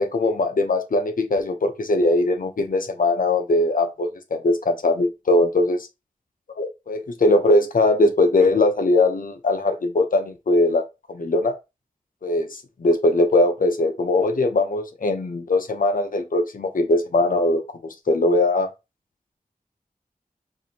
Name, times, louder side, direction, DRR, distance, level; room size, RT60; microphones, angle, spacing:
voice 1, 0.0-5.9 6.6-10.8 11.1-11.5 12.2-17.6 18.1-18.7, left 2 dB, 75° left, 0.7 m, -20 dB
4.8 x 2.6 x 2.8 m
wide cardioid pair, 55°, 14 cm